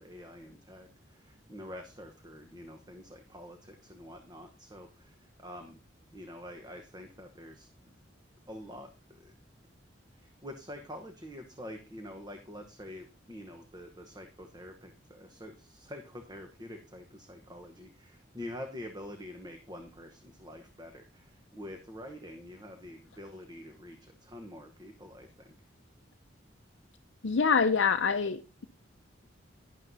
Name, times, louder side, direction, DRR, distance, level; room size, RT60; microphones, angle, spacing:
voice 1, 0.0-5.8 6.1-7.9 8.5-9.3 10.1-25.7, left 1 dB, 20° right, 1.0 m, -46 dB
voice 2, 27.2-28.7, left 5 dB, 75° left, 0.6 m, -26 dB
12.0 x 11.0 x 2.7 m
head